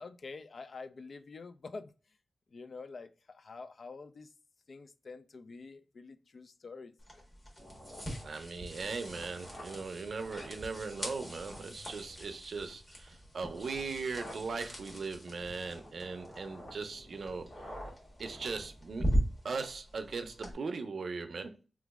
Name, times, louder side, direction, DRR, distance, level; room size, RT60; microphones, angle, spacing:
voice 1, 0.0-1.9 2.5-4.3 4.7-7.2, left 4 dB, 60° left, 0.3 m, -47 dB
sound 1, 7.0-20.5, equal, 20° left, 1.4 m, -40 dB
sound 2, 7.6-19.6, equal, 40° left, 1.7 m, -51 dB
voice 2, 8.2-17.5 18.2-19.1 19.4-21.6, right 4 dB, 70° right, 0.5 m, -39 dB
3.0 x 2.5 x 3.5 m
wide cardioid pair, 90°, 0 cm